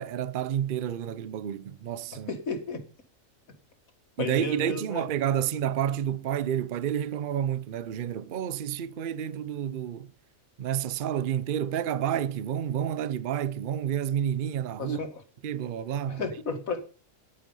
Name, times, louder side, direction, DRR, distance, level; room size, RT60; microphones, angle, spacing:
voice 1, 0.0-2.3 4.2-10.1 10.6-15.0 15.4-16.3, right 9 dB, 50° right, 0.7 m, -30 dB
voice 2, 2.3-2.8 4.2-5.1 14.8-15.1 16.1-16.8, left 3 dB, 90° left, 2.4 m, -33 dB
11.0 x 9.1 x 5.5 m
omnidirectional pair, 1.4 m